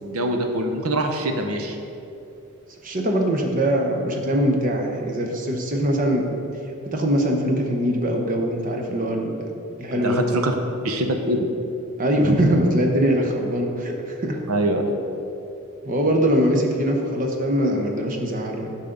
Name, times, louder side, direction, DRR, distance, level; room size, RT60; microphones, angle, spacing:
voice 1, 0.0-1.8 10.0-10.5 10.8-11.5 14.5-14.8, right 1 dB, 80° right, 4 dB, 0.8 m, -24 dB
voice 2, 2.8-6.3 6.9-9.5 9.8-10.2 12.0-14.4 15.8-18.8, equal, 35° right, 2 dB, 0.8 m, -22 dB
10.5 x 5.8 x 3.8 m, 2.8 s
head